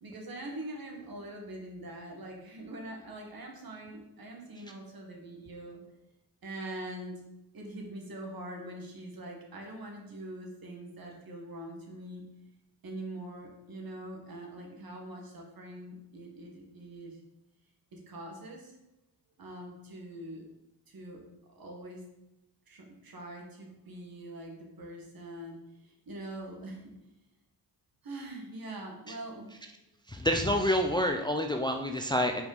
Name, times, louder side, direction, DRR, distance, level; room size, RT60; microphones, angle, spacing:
voice 1, 0.0-5.9 6.4-7.1 7.5-12.2 12.8-17.2 17.9-18.8 19.4-20.5 20.9-21.2 21.5-22.0 22.7-26.9 28.0-29.5, right 1 dB, 55° right, 1 dB, 1.9 m, -43 dB
voice 2, 30.1-32.5, equal, 10° left, 3 dB, 0.5 m, -28 dB
5.3 x 4.7 x 5.1 m, 0.90 s
cardioid pair, 75°, 43 cm